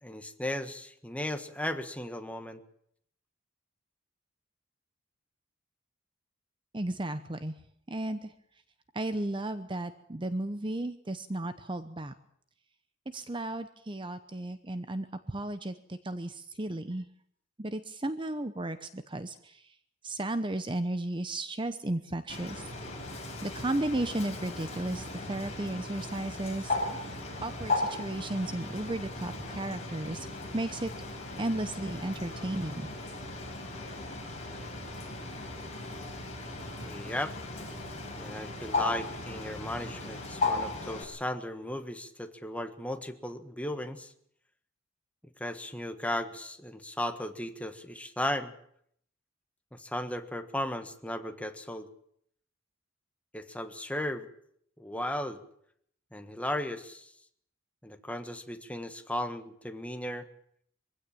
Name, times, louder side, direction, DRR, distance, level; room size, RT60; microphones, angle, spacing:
voice 1, 0.0-2.6 36.8-37.3 38.2-44.1 45.4-48.5 49.7-51.9 53.3-54.3 54.8-55.4 56.1-57.1 57.8-60.3, left 1 dB, 5° left, 7 dB, 1.5 m, -36 dB
voice 2, 6.7-7.5 7.9-8.3 8.9-12.1 13.1-17.1 17.6-19.6 20.0-22.6 23.4-26.8 27.1-30.3 30.5-30.9 31.4-32.9, right 1 dB, 25° right, 11 dB, 0.8 m, -34 dB
Bird, 22.3-41.0, left 2 dB, 35° left, 7.5 m, -37 dB
23.5 x 16.0 x 8.7 m, 0.68 s
head